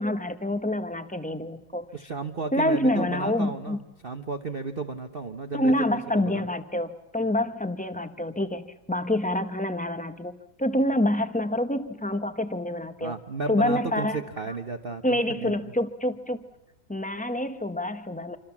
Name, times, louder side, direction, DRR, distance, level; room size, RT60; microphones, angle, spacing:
voice 1, 0.0-1.9 2.5-3.8 5.5-13.1 13.5-14.2 15.0-16.4 16.9-18.4, left 1 dB, 5° left, 9 dB, 0.6 m, -27 dB
voice 2, 1.9-6.4 13.0-15.5, right 4 dB, 35° right, 5 dB, 1.0 m, -34 dB
27.0 x 26.0 x 7.3 m, 0.87 s
omnidirectional pair, 2.0 m